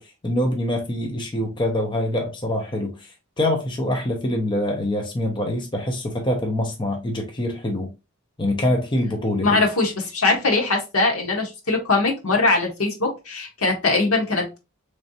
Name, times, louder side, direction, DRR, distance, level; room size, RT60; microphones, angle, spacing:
voice 1, 0.0-7.9 8.4-9.6, left 1 dB, 20° left, 0.6 m, -25 dB
voice 2, 9.4-14.6, left 3 dB, 75° left, 1.3 m, -21 dB
3.7 x 3.3 x 2.7 m
head